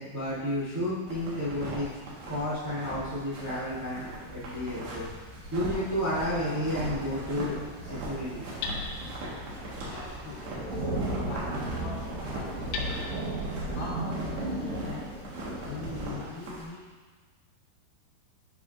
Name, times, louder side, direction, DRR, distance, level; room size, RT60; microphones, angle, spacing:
voice 1, 0.0-1.9 2.2-5.1 5.5-7.6 7.8-8.4, left 1 dB, 30° right, -9 dB, 1.6 m, -31 dB
sound 1, 1.1-16.6, right 1 dB, 70° right, 3.5 m, -40 dB
sound 2, 3.4-16.1, right 2 dB, 85° right, 5.1 m, -37 dB
Hammer, 4.5-14.3, left 4 dB, 90° left, 2.3 m, -44 dB
voice 2, 9.8-10.5 11.3-12.9 13.7-15.2 15.6-16.9, left 4 dB, 70° left, -6 dB, 2.3 m, -42 dB
13.5 x 4.8 x 2.6 m, 1.4 s
omnidirectional pair, 5.3 m